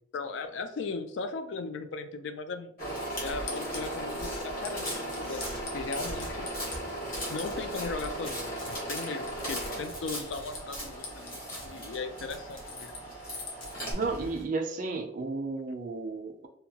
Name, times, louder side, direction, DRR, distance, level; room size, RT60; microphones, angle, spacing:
voice 1, 0.1-2.7 3.2-5.4 5.7-6.5 7.0-13.0, left 4 dB, 70° left, 8 dB, 0.3 m, -37 dB
sound 1, 2.8-14.4, right 1 dB, 45° left, 1.0 m, -37 dB
sound 2, 3.5-3.9 4.2-4.3 4.6-6.8 7.2-7.6 8.0-9.6 9.8-11.6 12.5-13.9, left 3 dB, 90° left, 0.7 m, -42 dB
sound 3, 4.2-5.6 6.0-7.6 8.2-8.8 9.2-10.9 11.6-11.7 12.3-12.7 13.6-13.7, left 1 dB, 25° left, 0.7 m, -46 dB
voice 2, 13.9-16.5, right 3 dB, 45° right, 4 dB, 0.4 m, -33 dB
2.8 x 2.2 x 2.8 m, 0.65 s
head